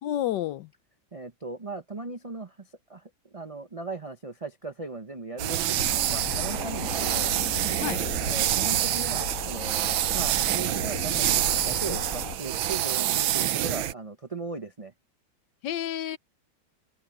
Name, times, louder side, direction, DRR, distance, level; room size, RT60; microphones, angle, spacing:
voice 1, 0.0-0.7 7.8-8.0 15.6-16.2, left 12 dB, 70° left, 1.2 m, -30 dB
voice 2, 1.1-7.3 8.3-14.9, right 3 dB, 45° right, 0.4 m, -38 dB
sound 1, 5.4-13.9, right 12 dB, 85° right, 1.6 m, -27 dB
sound 2, 5.7-12.4, left 4 dB, 45° left, 2.0 m, -36 dB
omnidirectional pair, 2.1 m